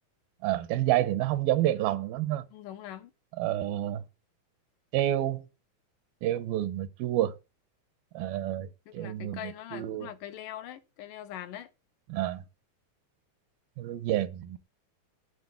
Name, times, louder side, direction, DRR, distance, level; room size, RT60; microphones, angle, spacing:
voice 1, 0.4-2.5 3.4-4.0 4.9-5.4 6.2-7.3 8.1-8.7 8.9-10.1 12.1-12.4 13.8-14.6, right 13 dB, 85° right, 2.7 m, -29 dB
voice 2, 2.5-3.1 8.9-11.7, left 11 dB, 70° left, 2.5 m, -42 dB
10.5 x 8.0 x 8.3 m
omnidirectional pair, 4.2 m